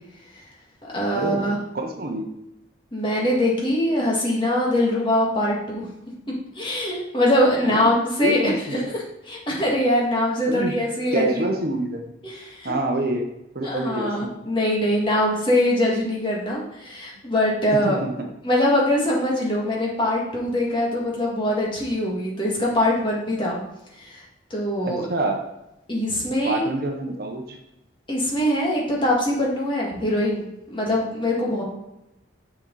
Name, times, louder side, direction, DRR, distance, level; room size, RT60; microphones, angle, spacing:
voice 1, 0.8-1.6 2.9-5.9 6.6-11.4 12.2-12.8 13.6-18.0 18.4-23.6 23.9-24.2 24.5-25.0 25.9-26.6 28.1-31.6, left 1 dB, 25° left, -3 dB, 1.8 m, -23 dB
voice 2, 1.7-2.3 7.6-7.9 8.2-8.9 10.5-10.7 11.1-12.1 12.6-13.3 13.5-14.3 17.8-18.1 24.9-25.4 26.4-27.6, right 2 dB, 50° right, 3 dB, 0.9 m, -26 dB
6.7 x 6.1 x 3.9 m, 0.88 s
head